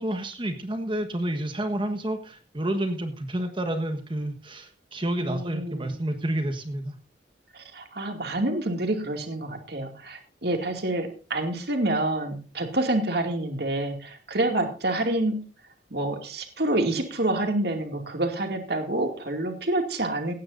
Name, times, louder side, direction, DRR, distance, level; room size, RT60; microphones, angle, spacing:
voice 1, 0.0-6.9, right 1 dB, 30° right, 7 dB, 1.3 m, -29 dB
voice 2, 5.2-6.0 7.5-15.4 15.9-20.3, right 1 dB, 65° right, 5 dB, 2.3 m, -27 dB
17.5 x 15.0 x 2.6 m, 0.36 s
head